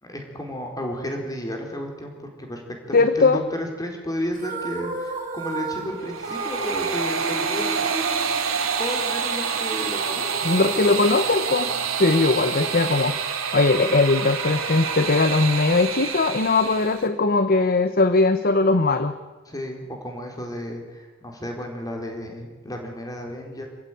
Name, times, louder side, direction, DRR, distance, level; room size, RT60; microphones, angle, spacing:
voice 1, 0.0-2.6 2.9-7.9 8.8-10.9 19.5-23.7, equal, 20° left, 2 dB, 4.7 m, -33 dB
voice 2, 2.9-3.4 10.4-11.7 12.0-13.2 13.5-19.1, left 3 dB, 45° left, 10 dB, 1.1 m, -20 dB
sound 1, 4.3-9.2, right 2 dB, 40° right, 4.7 m, -33 dB
sound 2, 5.9-17.1, right 6 dB, 90° right, 3.0 m, -27 dB
27.5 x 15.0 x 9.4 m, 1.3 s
head